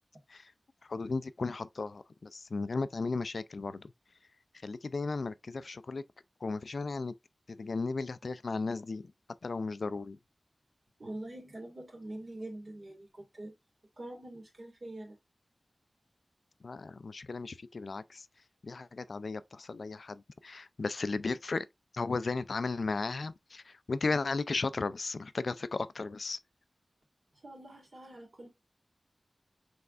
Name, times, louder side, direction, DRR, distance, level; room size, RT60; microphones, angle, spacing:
voice 1, 0.9-3.9 4.6-6.0 6.4-7.1 7.5-9.0 9.4-10.2 16.6-18.3 18.6-21.7 21.9-26.4, left 3 dB, 75° left, 0.3 m, -35 dB
voice 2, 11.0-13.5 14.0-15.2 27.3-28.5, right 1 dB, 60° right, 1.9 m, -44 dB
5.3 x 3.5 x 2.4 m
wide cardioid pair, 70°, 0 cm